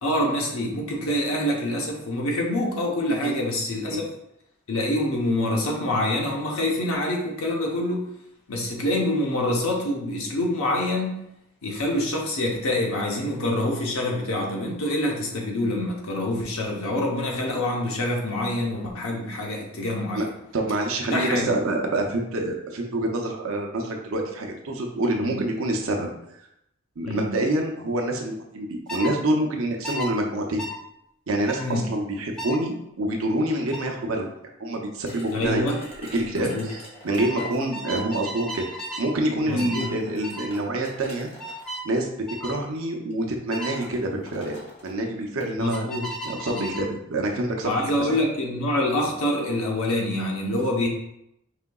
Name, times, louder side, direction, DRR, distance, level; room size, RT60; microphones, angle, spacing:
voice 1, 0.0-4.0 4.7-8.0 8.5-11.2 11.6-20.2 21.1-21.5 25.2-25.3 27.0-27.3 31.6-31.9 35.3-35.8 36.3-36.7 39.5-39.9 45.6-46.1 46.5-46.8 47.6-50.9, left 1 dB, 70° left, -1 dB, 0.8 m, -26 dB
voice 2, 20.5-26.1 27.0-30.6 31.3-34.3 34.6-35.7 36.0-38.7 39.0-41.3 41.8-42.1 42.4-45.9 46.2-48.2, right 1 dB, 65° right, 2 dB, 0.6 m, -27 dB
sound 1, 28.9-29.2 29.8-30.1 30.6-30.8 31.5-31.7 32.4-32.6 33.7-33.9 35.4-35.6 35.9-36.3 37.2-39.1 39.6-39.9 40.2-40.5 41.4-41.9 42.3-42.6 43.5-43.8 45.6-46.9, equal, 5° left, 0.5 m, -34 dB
sound 2, 35.1-37.8 38.9-39.0 39.5-41.7 42.6-42.8 43.1-43.2 43.5-45.5, equal, 25° left, 1.0 m, -45 dB
4.9 x 3.6 x 2.3 m, 0.79 s
head